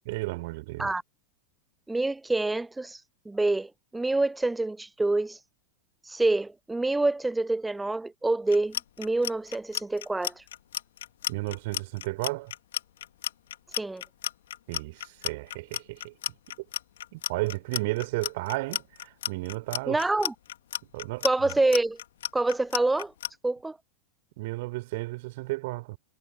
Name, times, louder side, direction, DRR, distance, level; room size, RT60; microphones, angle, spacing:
voice 1, 0.1-0.9 11.3-12.5 14.7-16.1 17.1-20.0 20.9-21.3 24.4-26.0, right 22 dB, 50° right, 3.9 m, -33 dB
voice 2, 1.9-5.4 6.0-10.4 13.8-14.0 19.9-20.3 21.2-22.0 22.3-23.1 23.4-23.8, right 2 dB, 5° right, 0.4 m, -27 dB
Clock, 8.5-23.3, left 12 dB, 60° left, 2.5 m, -33 dB
figure-of-eight pair, 90°, 0 cm